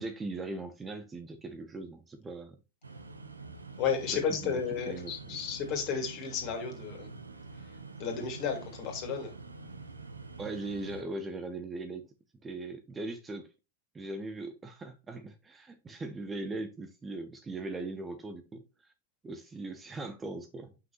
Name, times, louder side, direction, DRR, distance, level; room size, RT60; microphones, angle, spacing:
voice 1, 0.0-2.6 4.1-4.6 4.9-5.4 10.4-12.1 12.4-13.5 13.9-18.9 19.2-20.7, right 2 dB, 15° right, 0.8 m, -40 dB
sound 1, 2.8-11.0, right 3 dB, 80° right, 0.9 m, -46 dB
voice 2, 3.8-7.1 8.0-9.3, left 6 dB, 40° left, 2.6 m, -33 dB
7.3 x 5.7 x 3.0 m
figure-of-eight pair, 90°, 0 cm